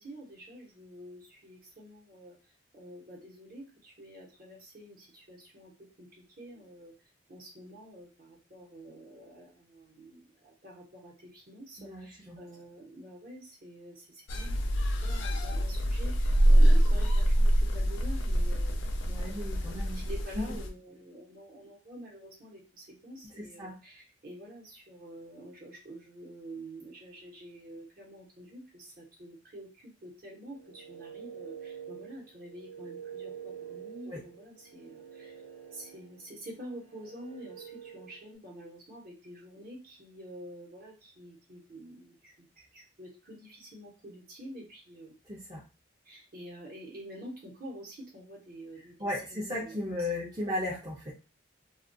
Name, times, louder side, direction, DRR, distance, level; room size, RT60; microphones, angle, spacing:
voice 1, 0.0-2.4 2.7-6.9 7.3-14.7 15.0-19.4 19.8-35.4 35.7-45.2 46.0-49.8 50.2-50.3, right 1 dB, 50° right, -2 dB, 0.9 m, -48 dB
voice 2, 11.8-12.4 19.1-20.0 20.3-20.6 23.2-23.7 34.1-34.2 45.3-45.6 49.0-51.1, left 1 dB, 20° right, -5 dB, 0.5 m, -36 dB
sound 1, 14.3-20.7, equal, 75° left, 0.4 m, -25 dB
sound 2, 30.5-38.4, right 8 dB, 80° right, 0.7 m, -47 dB
2.4 x 2.2 x 2.6 m, 0.31 s
head